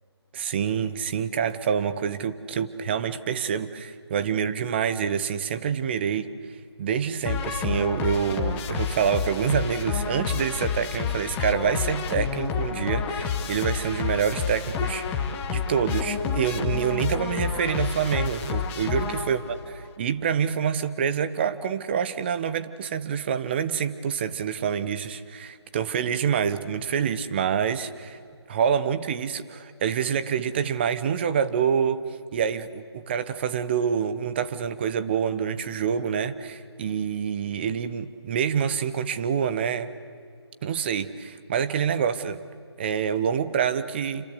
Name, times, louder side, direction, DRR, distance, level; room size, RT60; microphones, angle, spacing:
voice 1, 0.3-6.3 6.8-19.4 20.0-28.2 28.5-32.0 32.3-39.9 40.6-42.4 42.8-44.3, right 7 dB, 25° right, 12 dB, 0.9 m, -27 dB
sound 1, 7.2-19.6, left 6 dB, 10° left, 1.2 m, -29 dB
27.5 x 25.5 x 8.3 m, 2.2 s
figure-of-eight pair, 155°, 14 cm